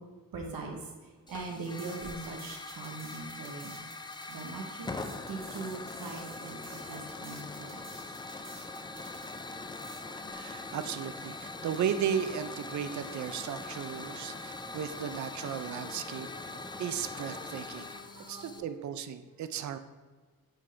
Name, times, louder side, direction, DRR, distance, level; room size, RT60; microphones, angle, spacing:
voice 1, 0.3-0.8 1.3-3.8 4.3-4.9 5.3-6.6 6.9-7.8 18.1-18.9, right 3 dB, 70° right, 1 dB, 1.0 m, -41 dB
Hiss / Fire, 1.3-18.6, left 3 dB, 15° left, 0.3 m, -42 dB
sound 1, 1.6-10.0, right 3 dB, 35° right, 1.3 m, -52 dB
voice 2, 10.3-16.3 16.8-17.9 18.3-19.8, right 8 dB, 50° right, 10 dB, 0.5 m, -35 dB
sound 2, 12.9-18.6, left 3 dB, 35° left, 0.9 m, -53 dB
8.8 x 3.6 x 3.3 m, 1.4 s
cardioid pair, 105°, 36 cm